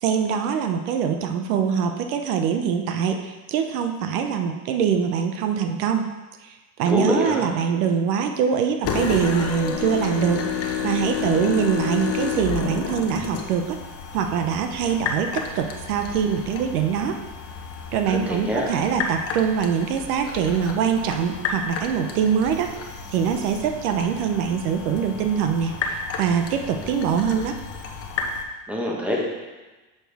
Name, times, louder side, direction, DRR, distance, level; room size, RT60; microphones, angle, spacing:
voice 1, 0.0-6.1 6.4-13.8 14.1-17.2 17.9-22.7 23.1-27.6, right 7 dB, 80° right, 6 dB, 0.9 m, -23 dB
voice 2, 6.9-7.5 18.1-18.7 28.7-29.2, left 1 dB, 5° right, -2 dB, 1.1 m, -25 dB
sound 1, 8.8-28.4, left 5 dB, 30° left, 0.8 m, -31 dB
6.9 x 6.0 x 3.5 m, 1.2 s
supercardioid pair, 125°, 45 cm